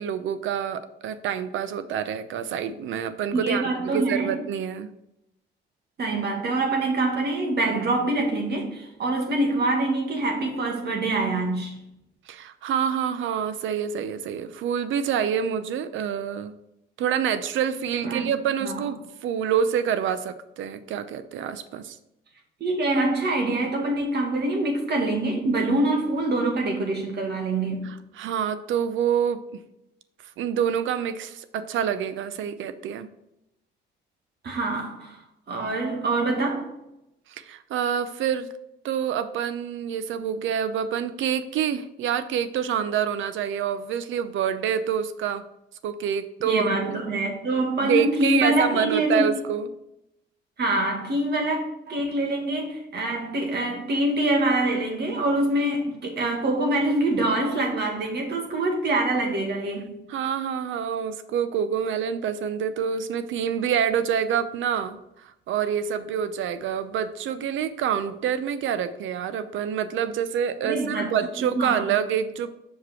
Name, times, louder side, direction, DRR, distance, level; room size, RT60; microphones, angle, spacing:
voice 1, 0.0-4.9 12.3-16.5 17.0-22.0 27.8-29.4 30.4-33.1 37.3-38.5 38.8-45.5 45.8-47.0 47.8-49.7 60.1-72.5, right 8 dB, 80° right, 12 dB, 0.6 m, -27 dB
voice 2, 3.3-4.5 6.0-11.8 18.0-18.3 18.6-18.8 22.6-27.9 34.4-35.2 35.5-36.7 46.4-49.3 50.6-59.9 70.6-71.1 71.4-72.0, right 2 dB, 55° right, 1 dB, 2.0 m, -25 dB
6.0 x 5.2 x 4.4 m, 0.87 s
cardioid pair, 90°, 20 cm